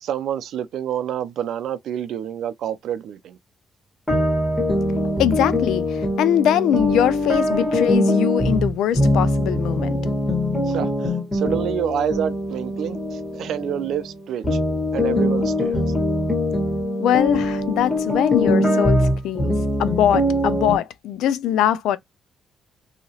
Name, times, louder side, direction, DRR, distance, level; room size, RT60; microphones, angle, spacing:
voice 1, 0.0-3.4 10.7-14.6 14.9-15.9, right 9 dB, 75° right, 0.4 m, -28 dB
sound 1, 4.1-14.2 14.4-20.8, left 1 dB, 10° left, 1.6 m, -22 dB
voice 2, 5.2-10.0 17.0-19.5 19.8-22.0, left 10 dB, 85° left, 0.3 m, -22 dB
2.8 x 2.7 x 2.8 m
cardioid pair, 90°, 0 cm